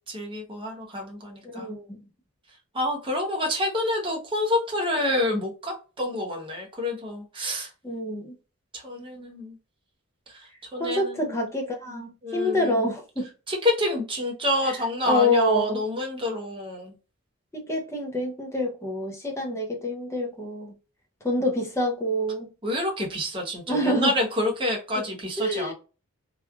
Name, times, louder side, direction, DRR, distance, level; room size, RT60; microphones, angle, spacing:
voice 1, 0.1-1.7 2.7-7.7 8.7-9.5 10.3-10.5 10.7-11.3 12.2-12.9 13.5-16.9 22.6-25.7, left 1 dB, 20° right, 0.7 m, -28 dB
voice 2, 1.5-2.0 7.8-8.3 10.8-13.3 14.7-14.8 15.1-15.8 17.5-20.7 21.2-22.5 23.7-24.1 24.9-25.0 25.4-25.7, left 1 dB, 10° left, 0.6 m, -27 dB
3.0 x 2.3 x 2.3 m
head